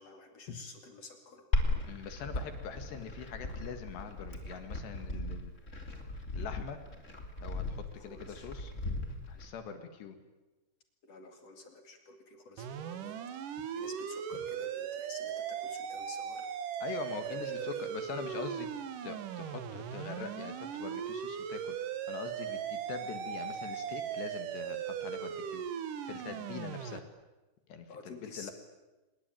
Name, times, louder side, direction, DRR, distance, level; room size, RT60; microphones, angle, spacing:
voice 1, 0.0-1.5 8.0-8.5 11.0-13.2 13.8-16.5 17.2-17.9 27.9-28.5, left 3 dB, 40° left, 5 dB, 2.6 m, -50 dB
Glass, 1.5-9.5, left 2 dB, 20° left, 2.1 m, -36 dB
voice 2, 1.9-5.5 6.3-6.8 7.4-8.7 9.3-10.2 16.8-18.7 19.0-21.8 22.1-25.6 26.1-27.1 27.7-27.9 28.2-28.5, left 6 dB, 60° left, 8 dB, 3.6 m, -43 dB
sound 1, 12.6-27.0, right 8 dB, 70° right, 2.0 m, -38 dB
25.5 x 21.5 x 9.1 m, 1.1 s
omnidirectional pair, 6.0 m